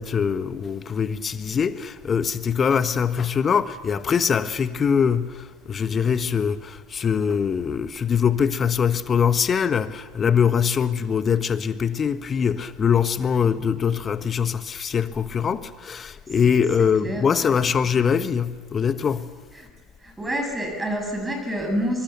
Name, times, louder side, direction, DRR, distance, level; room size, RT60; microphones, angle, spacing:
voice 1, 0.0-19.3, left 7 dB, 30° left, 1.3 m, -23 dB
voice 2, 16.8-17.5 19.5-19.7 20.0-22.0, equal, 15° right, 6.8 m, -28 dB
24.0 x 24.0 x 6.9 m
hypercardioid pair, 70°, 0 cm